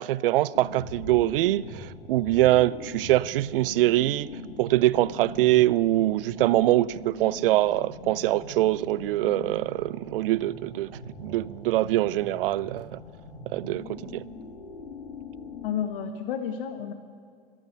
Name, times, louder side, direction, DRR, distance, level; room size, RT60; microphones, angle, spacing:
voice 1, 0.0-4.3 4.6-13.0 13.5-14.2, right 15 dB, 65° right, 0.5 m, -24 dB
sound 1, 0.5-15.7, left 2 dB, 90° left, 2.2 m, -42 dB
voice 2, 15.6-16.9, left 8 dB, 65° left, 1.2 m, -31 dB
14.5 x 14.0 x 6.7 m
hypercardioid pair, 95°, 30 cm